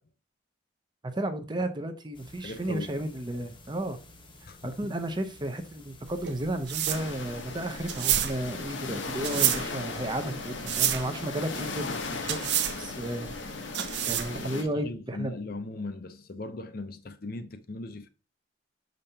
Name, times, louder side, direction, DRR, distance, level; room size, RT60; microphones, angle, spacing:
voice 1, 1.1-4.0 4.6-13.3 14.1-15.3, right 1 dB, 25° right, 0.6 m, -33 dB
sound 1, 2.1-13.2, left 2 dB, 25° left, 1.0 m, -53 dB
voice 2, 2.4-3.0 4.5-5.0 14.1-18.1, left 2 dB, 50° left, 0.7 m, -39 dB
sound 2, 6.1-14.5, right 11 dB, 60° right, 0.7 m, -30 dB
sound 3, 6.9-14.6, left 3 dB, 75° left, 1.1 m, -37 dB
6.7 x 5.2 x 2.8 m
head